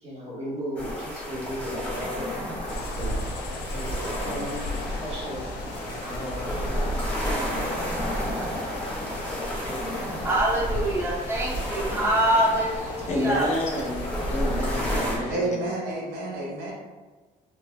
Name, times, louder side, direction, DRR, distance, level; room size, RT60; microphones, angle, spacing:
voice 1, 0.0-2.4 2.7-3.3 3.7-5.5 5.8-7.0 7.3-7.8 8.2-8.6 9.6-10.1, equal, 40° right, -7 dB, 1.4 m, -37 dB
sound 1, 0.8-15.2, equal, 10° left, 1.0 m, -31 dB
sound 2, 2.7-15.4, left 3 dB, 85° left, 0.6 m, -39 dB
voice 2, 10.2-13.5, right 1 dB, 15° right, -6 dB, 0.8 m, -25 dB
voice 3, 13.1-14.1 14.3-15.6, left 1 dB, 40° left, -1 dB, 0.6 m, -28 dB
voice 4, 15.3-16.7, right 2 dB, 75° right, -4 dB, 0.9 m, -29 dB
3.8 x 2.3 x 2.2 m, 1.3 s
cardioid pair, 110°, 17 cm